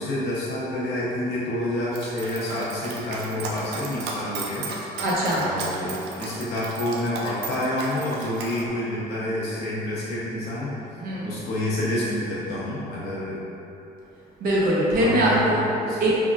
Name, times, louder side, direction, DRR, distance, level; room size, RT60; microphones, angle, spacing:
voice 1, 0.0-4.7 5.3-10.7 11.2-13.4 15.0-16.0, left 1 dB, 80° left, -7 dB, 1.1 m, -28 dB
Dog, 1.9-8.6, right 3 dB, 80° right, 0.5 m, -35 dB
voice 2, 5.0-5.5 11.0-11.4 14.4-15.3 16.0-16.1, right 1 dB, 60° right, -6 dB, 1.0 m, -22 dB
3.6 x 3.5 x 2.6 m, 2.9 s
cardioid pair, 110°, 17 cm